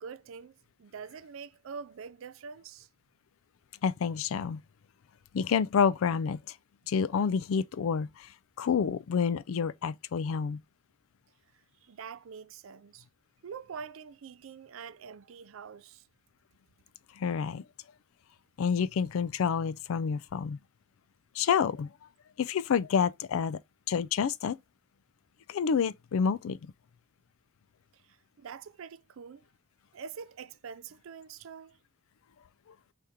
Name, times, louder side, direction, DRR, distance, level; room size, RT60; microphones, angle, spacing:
voice 1, 0.0-2.9 11.8-13.1 13.4-16.0 28.0-29.4 29.9-31.8, right 6 dB, 80° right, 0.4 m, -45 dB
voice 2, 3.8-4.6 5.3-6.5 6.9-8.3 8.6-10.6 17.2-17.6 18.6-20.6 21.3-21.9 22.4-23.6 23.9-24.6 25.5-26.7, left 6 dB, 80° left, 0.4 m, -28 dB
4.9 x 3.5 x 2.8 m
head